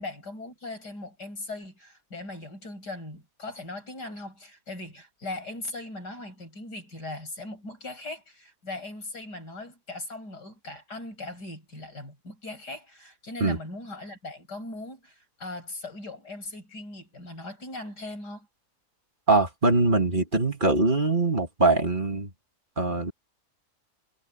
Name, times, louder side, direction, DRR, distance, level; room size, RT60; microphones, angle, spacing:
voice 1, 0.0-18.5, left 2 dB, 80° left, 8.6 m, -39 dB
voice 2, 19.3-22.3 22.8-23.1, right 3 dB, 30° right, 2.3 m, -22 dB
omnidirectional pair, 1.8 m